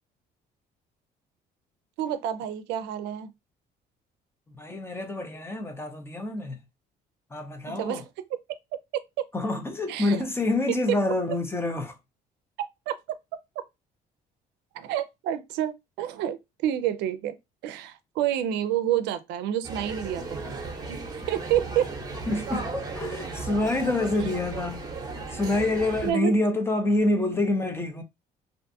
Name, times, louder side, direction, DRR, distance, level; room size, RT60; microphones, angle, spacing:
voice 1, 2.0-3.3 7.7-8.1 9.2-9.3 9.9-10.2 12.9-13.0 14.7-17.4 17.6-20.4 20.9-21.9 26.0-26.3, right 11 dB, 85° right, 0.4 m, -28 dB
voice 2, 4.5-6.6 7.3-8.0 9.3-11.9 22.3-24.8 25.1-28.0, left 2 dB, 15° left, 0.6 m, -27 dB
sound 1, 19.6-26.1, right 3 dB, 25° right, 0.8 m, -35 dB
2.5 x 2.3 x 2.6 m
cardioid pair, 110°, 17 cm